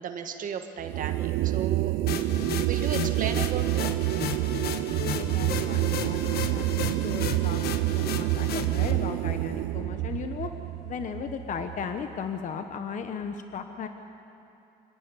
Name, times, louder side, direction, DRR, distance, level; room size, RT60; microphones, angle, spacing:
voice 1, 0.0-1.9 2.2-2.3 2.6-3.9, right 7 dB, 50° right, 6 dB, 1.7 m, -34 dB
sound 1, 0.8-12.1, right 17 dB, 80° right, 0.5 m, -28 dB
sound 2, 2.1-8.9, left 8 dB, 65° left, 1.3 m, -35 dB
sound 3, 4.7-12.5, equal, ahead, 3.7 m, -53 dB
voice 2, 5.0-10.5 10.8-13.9, left 6 dB, 50° left, 7 dB, 1.1 m, -36 dB
26.0 x 11.0 x 9.9 m, 2.7 s
cardioid pair, 110°, 17 cm